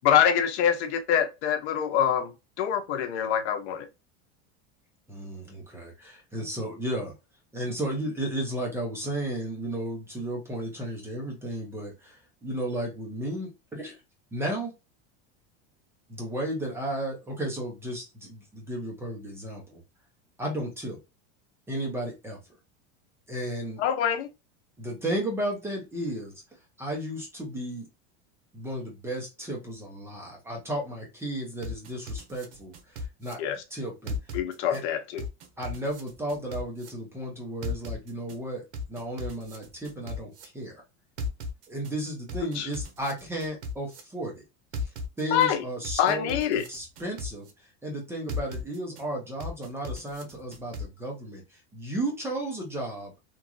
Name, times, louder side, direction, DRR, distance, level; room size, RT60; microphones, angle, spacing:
voice 1, 0.0-2.3 2.6-3.9 23.8-24.3 33.4-33.6 34.3-35.2 42.5-42.7 45.3-45.6 46.0-46.6, left 9 dB, 75° left, 0.7 m, -25 dB
voice 2, 5.1-7.1 7.5-14.0 14.3-14.7 16.1-19.8 20.4-21.0 21.7-22.4 23.3-23.8 24.8-26.3 26.8-27.9 28.5-33.4 33.7-34.2 34.7-34.8 35.6-40.8 41.7-44.4 44.8-44.9 45.2-47.5 47.8-53.1, right 1 dB, 5° right, 0.5 m, -34 dB
sound 1, 31.6-33.3 34.1-34.8 35.2-36.9 37.6-38.4 38.7-40.4 41.2-41.9 42.3-44.0 44.7-45.5 45.8-47.5 48.3-49.0 49.4-50.8, left 2 dB, 80° right, 0.9 m, -36 dB
3.0 x 2.4 x 2.3 m
supercardioid pair, 165°, 34 cm